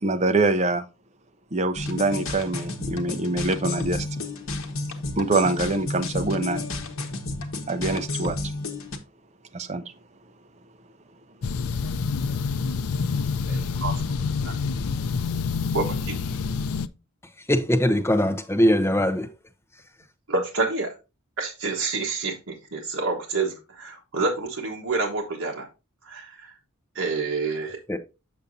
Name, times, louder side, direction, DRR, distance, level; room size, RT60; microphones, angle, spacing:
voice 1, 0.0-0.9 1.5-4.2 5.1-6.7 7.7-8.4 9.5-9.8, right 3 dB, 30° right, 0.6 m, -24 dB
sound 1, 1.8-9.0, left 2 dB, 70° left, 1.1 m, -31 dB
sound 2, 11.4-16.9, left 5 dB, 85° left, 0.5 m, -27 dB
voice 2, 13.5-14.5 15.7-16.2 20.3-20.9 21.4-25.7 26.0-26.5 26.9-27.8, right 3 dB, 70° right, 1.2 m, -28 dB
voice 3, 17.5-19.3 27.9-28.0, equal, 10° left, 0.7 m, -21 dB
7.0 x 6.8 x 2.6 m
head